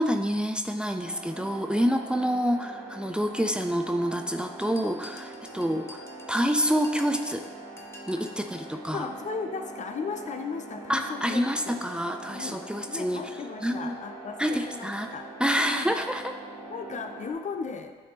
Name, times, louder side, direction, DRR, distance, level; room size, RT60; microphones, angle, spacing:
voice 1, 0.0-7.4 8.1-9.1 10.9-13.2 13.6-13.9 14.4-15.1 15.4-16.3, equal, 5° right, 6 dB, 0.5 m, -27 dB
sound 1, 1.0-17.3, right 2 dB, 65° right, 1.7 m, -43 dB
sound 2, 4.6-8.5, left 2 dB, 15° left, 0.9 m, -48 dB
voice 2, 8.9-11.8 12.3-15.3 15.6-15.9 16.7-17.9, left 5 dB, 50° left, 7 dB, 0.5 m, -36 dB
9.4 x 3.4 x 2.9 m, 1.4 s
supercardioid pair, 50°, 16 cm